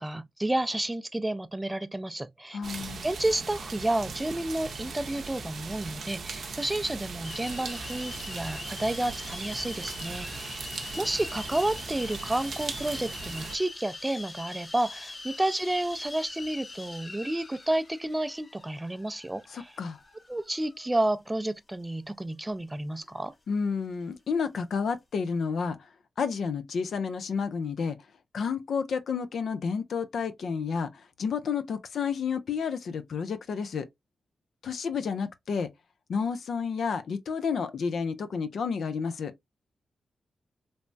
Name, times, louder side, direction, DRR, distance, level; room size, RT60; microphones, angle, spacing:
voice 1, 0.0-2.6 3.0-10.6 11.0-19.7 20.3-23.3, right 1 dB, 15° right, 0.4 m, -31 dB
voice 2, 2.5-3.0 19.5-20.0 23.5-25.8 26.2-28.0 28.3-33.9 34.6-35.7 36.1-39.3, left 5 dB, 75° left, 0.4 m, -30 dB
sound 1, 2.6-13.6, right 4 dB, 70° right, 0.6 m, -39 dB
sound 2, 7.2-20.9, left 2 dB, 40° left, 0.8 m, -43 dB
3.2 x 2.0 x 2.5 m
cardioid pair, 60°, 0 cm